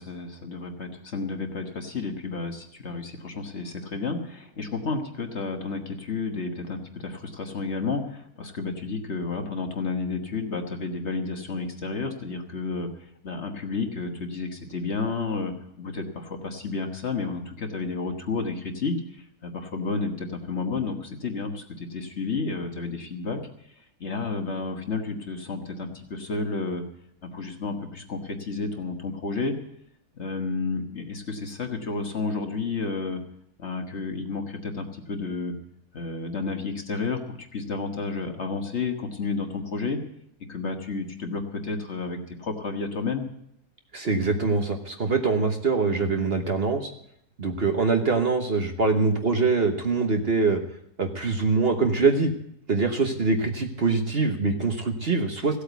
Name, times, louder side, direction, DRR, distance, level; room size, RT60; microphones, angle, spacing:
voice 1, 0.0-12.9 13.2-23.5 24.0-26.8 27.2-29.6 30.1-33.2 33.6-35.5 35.9-40.0 40.5-43.3, left 4 dB, 45° left, 5 dB, 1.6 m, -31 dB
voice 2, 43.9-46.9 47.4-50.6 51.0-52.3 52.7-55.6, right 4 dB, 40° right, 5 dB, 1.3 m, -24 dB
16.0 x 8.3 x 8.1 m, 0.75 s
omnidirectional pair, 1.7 m